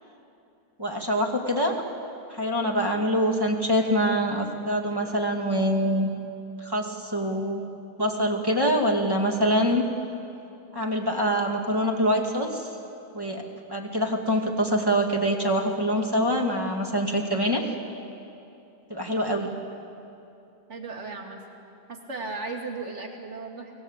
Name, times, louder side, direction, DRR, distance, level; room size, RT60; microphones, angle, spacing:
voice 1, 0.8-1.8 2.3-6.1 6.6-7.6 8.0-9.8 10.7-12.7 13.1-13.4 13.7-17.6 18.9-19.5, equal, 15° right, 1 dB, 2.5 m, -25 dB
voice 2, 19.3-19.6 20.7-21.4 21.9-23.7, right 3 dB, 50° right, 2 dB, 2.8 m, -36 dB
28.5 x 20.0 x 8.3 m, 2.8 s
omnidirectional pair, 1.6 m